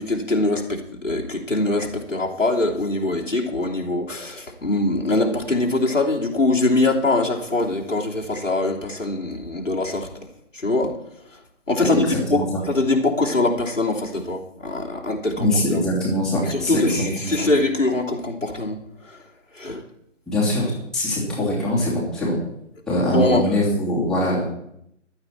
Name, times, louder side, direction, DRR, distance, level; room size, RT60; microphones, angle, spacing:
voice 1, 0.0-10.1 10.5-11.0 11.7-15.8 16.5-18.8 19.0-19.2 19.5-19.8 22.9-23.5, left 2 dB, 85° left, -2 dB, 3.1 m, -23 dB
voice 2, 11.9-12.6 15.4-17.5 20.3-22.4 22.9-24.5, left 1 dB, ahead, -8 dB, 2.8 m, -23 dB
15.0 x 11.5 x 4.6 m, 0.77 s
figure-of-eight pair, 145°, 37 cm